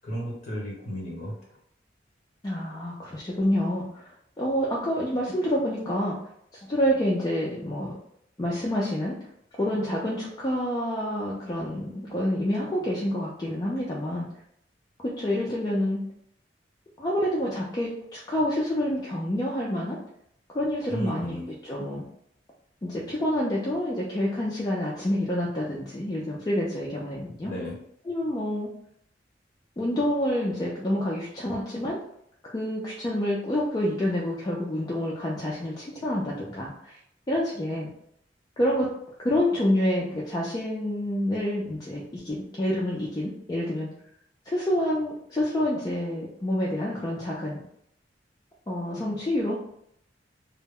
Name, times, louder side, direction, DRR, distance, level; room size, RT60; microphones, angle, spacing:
voice 1, 0.0-1.5 20.9-21.5 27.4-27.8, equal, 40° left, -3 dB, 1.0 m, -34 dB
voice 2, 2.4-4.0 4.4-6.1 6.7-7.9 8.4-9.2 9.6-14.3 15.0-16.0 17.0-20.0 20.5-21.4 21.6-22.0 22.8-27.5 28.1-28.7 29.8-32.0 32.4-37.0 37.3-37.9 38.6-38.9 39.2-43.9 44.5-47.6 48.7-49.5, left 1 dB, 20° left, -5 dB, 0.4 m, -28 dB
2.1 x 2.0 x 3.5 m, 0.72 s
head